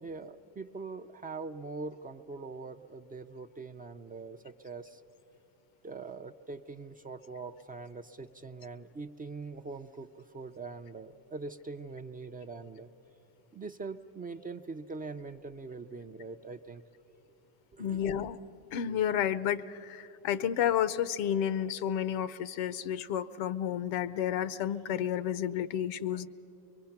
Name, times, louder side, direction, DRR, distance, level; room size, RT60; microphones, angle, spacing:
voice 1, 0.0-5.0 5.8-12.9 13.5-16.8 17.7-18.0, right 4 dB, 20° right, 7 dB, 0.4 m, -43 dB
voice 2, 17.8-18.4 18.7-26.3, left 9 dB, 80° left, 16 dB, 0.8 m, -31 dB
23.5 x 23.0 x 5.8 m, 2.9 s
cardioid pair, 115°, 47 cm